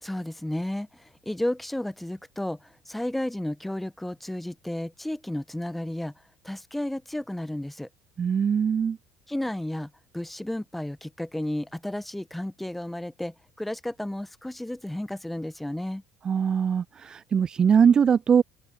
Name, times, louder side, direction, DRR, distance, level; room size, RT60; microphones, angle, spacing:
voice 1, 0.0-6.1 6.4-7.9 9.3-16.0, left 1 dB, 5° left, 1.4 m, -33 dB
voice 2, 8.2-9.0 16.2-18.4, right 7 dB, 30° right, 0.5 m, -21 dB
open air
figure-of-eight pair, 60°, 2 cm